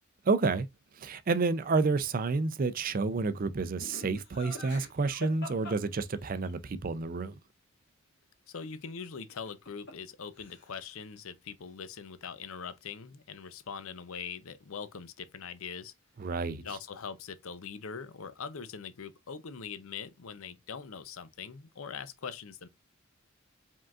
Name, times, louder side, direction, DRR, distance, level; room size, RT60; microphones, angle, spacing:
voice 1, 0.3-0.7 1.0-7.3 16.2-16.6, right 4 dB, 40° right, 0.4 m, -29 dB
Laughter, 3.8-6.5 9.3-10.1 10.4-10.9, left 1 dB, 50° left, 1.9 m, -45 dB
voice 2, 8.5-15.9 16.6-22.7, left 6 dB, 70° left, 0.6 m, -42 dB
5.0 x 3.7 x 2.4 m
head